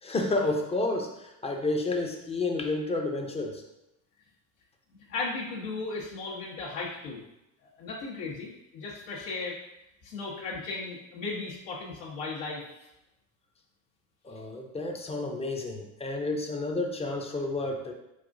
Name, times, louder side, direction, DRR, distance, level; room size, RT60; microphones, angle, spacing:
voice 1, 0.0-3.6 14.2-17.9, left 2 dB, 15° left, 2 dB, 0.5 m, -30 dB
voice 2, 5.1-7.2 7.8-9.6 10.0-12.9, left 3 dB, 90° left, -6 dB, 1.3 m, -36 dB
4.8 x 3.7 x 2.6 m, 0.90 s
supercardioid pair, 120°, 41 cm